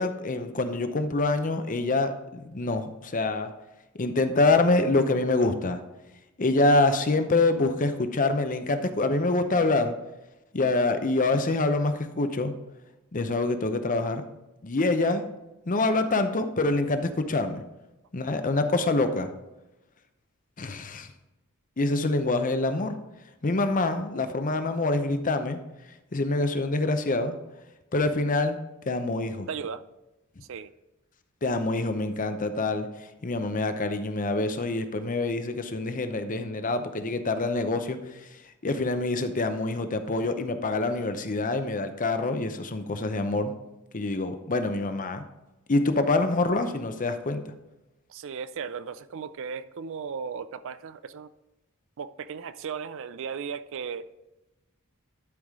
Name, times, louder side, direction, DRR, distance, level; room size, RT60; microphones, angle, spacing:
voice 1, 0.0-3.5 4.0-5.8 6.4-9.9 10.5-12.5 13.1-14.2 14.6-15.2 15.7-17.6 18.1-19.3 20.6-21.1 21.8-23.0 23.4-25.6 26.1-27.4 27.9-28.6 28.8-29.5 31.4-32.9 33.2-38.0 38.6-43.5 43.9-45.2 45.7-47.4, left 2 dB, 40° left, 8 dB, 0.7 m, -25 dB
voice 2, 29.5-29.8 30.5-30.7 48.1-51.3 52.0-54.1, right 6 dB, 60° right, 14 dB, 0.4 m, -36 dB
12.0 x 4.9 x 3.7 m, 1.0 s
head